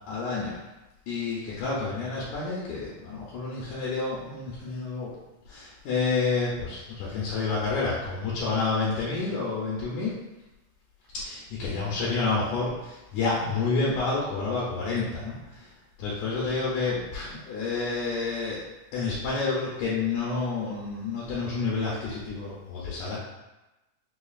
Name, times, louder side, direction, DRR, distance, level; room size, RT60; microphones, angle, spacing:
voice 1, 0.1-0.6 1.1-5.1 5.5-10.1 11.2-15.7 16.0-18.6 18.9-23.2, left 4 dB, 75° left, -6 dB, 1.9 m, -29 dB
5.6 x 2.3 x 2.4 m, 1.0 s
omnidirectional pair, 3.7 m